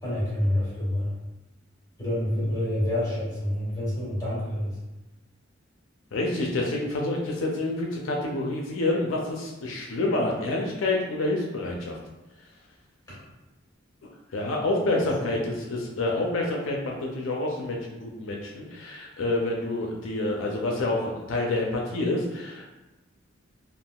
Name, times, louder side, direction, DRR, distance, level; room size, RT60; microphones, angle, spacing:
voice 1, 0.0-1.1 2.0-4.7 13.1-13.2 15.2-15.4, left 1 dB, 20° left, -9 dB, 1.4 m, -27 dB
voice 2, 6.1-11.9 14.3-22.6, left 2 dB, 80° left, -1 dB, 0.4 m, -28 dB
3.4 x 2.3 x 2.2 m, 1.0 s
head